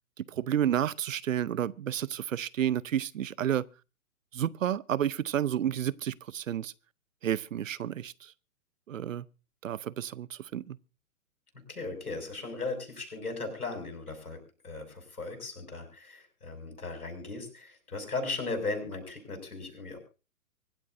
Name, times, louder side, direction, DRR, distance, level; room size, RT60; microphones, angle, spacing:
voice 1, 0.2-3.6 4.3-6.7 7.2-8.3 8.9-9.2 9.6-10.8, right 10 dB, 60° right, 0.7 m, -31 dB
voice 2, 11.7-20.0, left 3 dB, 85° left, 7.0 m, -37 dB
24.5 x 12.0 x 2.6 m
figure-of-eight pair, 125°, 44 cm